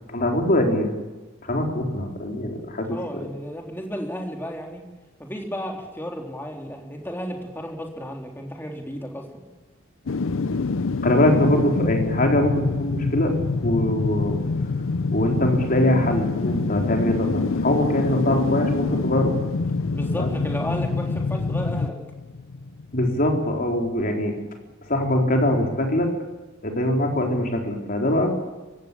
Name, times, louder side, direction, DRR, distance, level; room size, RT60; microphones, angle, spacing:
voice 1, 0.1-0.9 1.4-3.0 11.0-13.3 13.6-14.4 15.1-19.3 20.2-20.3 22.9-24.3 24.9-26.1 26.6-28.3, left 1 dB, 45° left, 2 dB, 4.2 m, -22 dB
voice 2, 2.9-4.8 5.2-9.3 19.9-22.0, equal, 10° left, 1 dB, 3.6 m, -33 dB
sound 1, 10.1-23.1 23.5-23.6, left 3 dB, 70° left, 0.6 m, -26 dB
22.5 x 16.5 x 8.7 m, 1.2 s
head